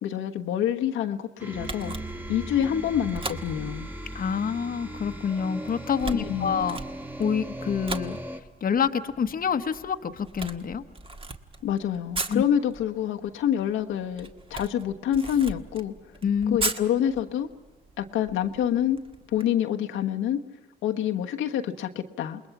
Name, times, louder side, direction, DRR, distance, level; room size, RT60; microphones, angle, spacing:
voice 1, 0.0-1.9 2.3-3.9 6.1-6.6 11.6-15.9 16.5-17.5 18.0-19.0 19.3-20.4 20.8-22.4, left 10 dB, 85° left, 3 dB, 1.3 m, -27 dB
sound 1, 1.4-8.4, right 1 dB, 10° right, 1.8 m, -37 dB
Camera, 1.6-19.4, right 3 dB, 25° right, 1.6 m, -39 dB
voice 2, 4.1-6.8 7.2-8.2 8.6-10.8 12.3-12.4 16.2-16.6, left 7 dB, 45° left, 8 dB, 1.1 m, -27 dB
28.0 x 21.0 x 6.0 m, 1.2 s
cardioid pair, 90°, 20 cm